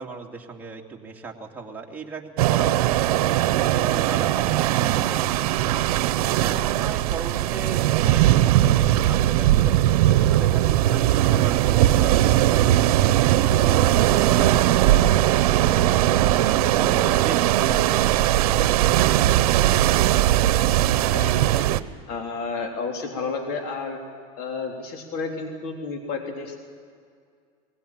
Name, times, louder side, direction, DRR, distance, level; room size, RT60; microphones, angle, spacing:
voice 1, 0.0-9.8 10.2-16.3 16.8-18.8, right 4 dB, 10° right, -2 dB, 2.7 m, -38 dB
sound 1, 2.4-21.8, right 13 dB, 85° right, 0.9 m, -19 dB
voice 2, 21.1-21.7 22.1-24.0 24.4-26.6, left 4 dB, 55° left, 2 dB, 3.6 m, -31 dB
22.0 x 17.0 x 9.0 m, 2.2 s
supercardioid pair, 125°, 19 cm